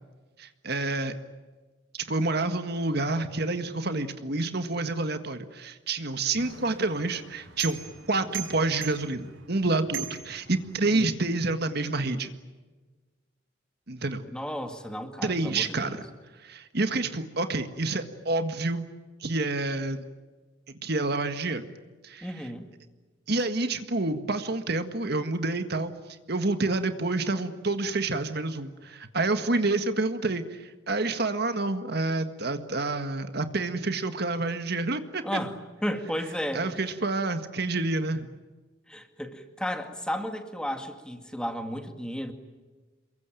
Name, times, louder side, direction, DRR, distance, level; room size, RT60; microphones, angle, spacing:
voice 1, 0.4-1.1 1.9-7.8 8.1-12.3 13.9-14.3 15.2-16.1 16.4-18.8 19.2-20.0 20.8-21.7 22.0-22.5 23.3-25.9 26.3-35.2 36.5-38.3, right 2 dB, 55° right, 9 dB, 1.7 m, -28 dB
sound 1, 6.4-11.1, right 9 dB, 90° right, 6.8 m, -41 dB
voice 2, 14.3-16.0 22.2-22.7 35.2-36.7 38.9-42.3, equal, 5° left, 6 dB, 2.2 m, -33 dB
28.5 x 23.0 x 9.1 m, 1.3 s
head